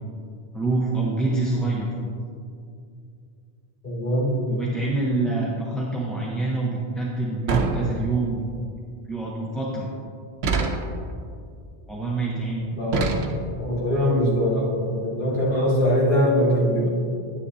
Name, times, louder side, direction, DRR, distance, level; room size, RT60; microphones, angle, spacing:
voice 1, 0.5-1.9 4.5-8.5 9.1-9.9 11.9-12.7, right 3 dB, ahead, -5 dB, 0.7 m, -26 dB
voice 2, 3.8-4.4 12.8-13.2 13.6-16.9, equal, 45° left, -8 dB, 2.7 m, -22 dB
sound 1, 7.5-8.4 10.4-11.1 12.9-13.7, right 3 dB, 65° right, 1.0 m, -25 dB
9.9 x 9.7 x 2.7 m, 2.4 s
omnidirectional pair, 1.1 m